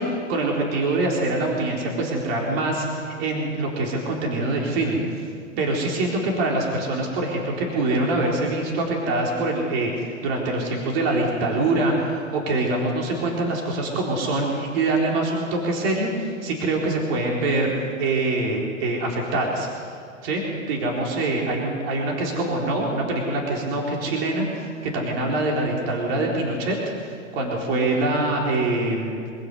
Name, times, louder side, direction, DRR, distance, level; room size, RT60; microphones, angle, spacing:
voice 1, 0.0-5.2 5.6-17.7 18.0-19.7 20.2-20.4 20.7-26.8 27.0-29.2, right 2 dB, 45° right, -1 dB, 4.3 m, -24 dB
25.5 x 17.0 x 8.1 m, 2.3 s
hypercardioid pair, 140°, 40 cm